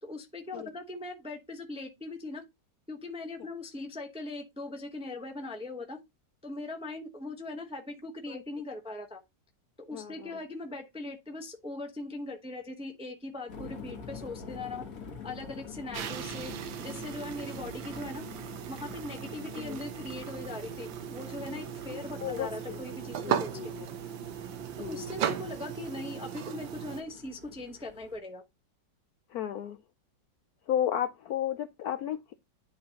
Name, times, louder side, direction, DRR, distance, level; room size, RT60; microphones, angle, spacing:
voice 1, 0.0-2.4 2.9-6.0 6.4-9.2 9.9-14.8 15.2-16.5 16.8-18.2 18.7-23.7 24.9-28.4, left 2 dB, 5° right, 0.6 m, -40 dB
voice 2, 9.9-10.4 19.6-19.8 22.2-22.8 23.2-23.9 24.8-25.1 29.3-29.8 30.7-32.3, left 10 dB, 70° left, 0.9 m, -33 dB
sound 1, 13.5-28.2, left 5 dB, 50° left, 1.8 m, -47 dB
sound 2, 15.9-27.0, right 10 dB, 85° right, 1.5 m, -37 dB
10.0 x 3.9 x 2.9 m
omnidirectional pair, 2.0 m